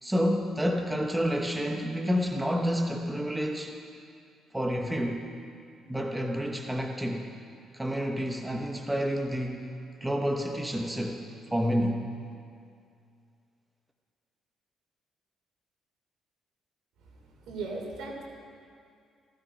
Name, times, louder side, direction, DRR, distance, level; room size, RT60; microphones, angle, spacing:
voice 1, 0.0-3.7 4.5-5.2 5.9-7.3 7.7-9.7 10.0-11.2 11.5-12.1, equal, 5° right, 1 dB, 1.0 m, -29 dB
voice 2, 17.0-18.2, right 3 dB, 70° right, 0 dB, 3.3 m, -38 dB
16.5 x 15.5 x 5.1 m, 2.3 s
cardioid pair, 140°, 0 cm